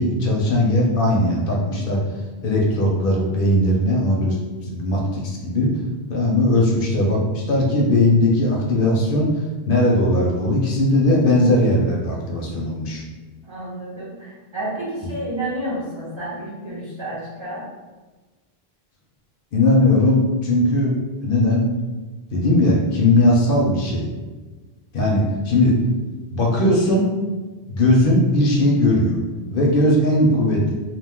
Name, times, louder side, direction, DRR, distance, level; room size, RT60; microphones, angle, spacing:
voice 1, 0.0-2.0 2.4-4.4 4.7-5.7 6.1-9.3 9.7-13.0 19.5-20.9 21.2-21.6 22.3-24.1 24.9-25.7 26.3-27.1 27.7-29.2 29.5-30.7, left 1 dB, 65° left, -1 dB, 0.7 m, -18 dB
voice 2, 13.4-17.7, right 1 dB, 30° right, -8 dB, 0.7 m, -30 dB
2.4 x 2.2 x 3.5 m, 1.3 s
omnidirectional pair, 1.0 m